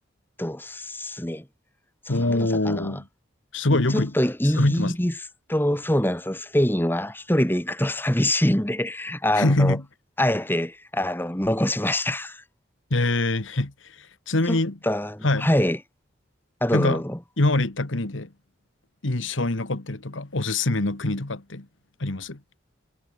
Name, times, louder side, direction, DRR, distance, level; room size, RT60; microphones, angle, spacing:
voice 1, 0.4-1.5 2.1-3.0 3.7-5.1 5.5-9.8 10.2-12.4 14.5-15.8 16.6-17.2, left 1 dB, 10° left, 1.7 m, -25 dB
voice 2, 2.1-3.1 3.5-4.1 4.5-4.9 9.3-9.8 12.9-13.7 14.0-14.8 15.2-15.5 16.7-17.0 17.4-18.3 19.0-21.7 22.0-22.4, left 2 dB, 80° left, 1.7 m, -24 dB
head